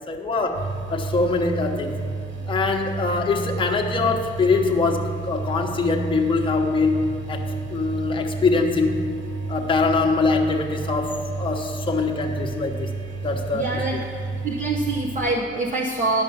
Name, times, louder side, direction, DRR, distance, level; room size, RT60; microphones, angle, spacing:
voice 1, 0.1-2.0 2.5-9.1 9.5-12.9 13.2-13.8, left 3 dB, 25° left, 1 dB, 1.0 m, -23 dB
sound 1, 0.5-15.2, right 3 dB, 75° right, 1.1 m, -31 dB
voice 2, 13.5-14.1 14.4-16.2, right 2 dB, 40° right, -1 dB, 0.9 m, -25 dB
10.5 x 5.4 x 7.1 m, 2.2 s
cardioid pair, 90°, 20 cm